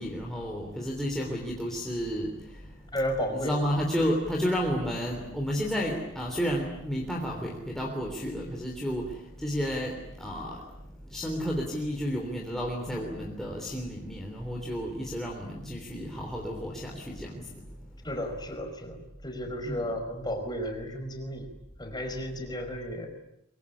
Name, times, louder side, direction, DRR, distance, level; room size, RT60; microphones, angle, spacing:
voice 1, 0.0-2.3 3.3-9.1 9.4-10.6 11.1-17.4 19.6-19.8, equal, ahead, -2 dB, 3.3 m, -31 dB
voice 2, 2.9-3.6 18.0-21.5 21.8-23.1, equal, 20° left, 5 dB, 4.8 m, -33 dB
24.0 x 23.5 x 9.9 m, 0.81 s
head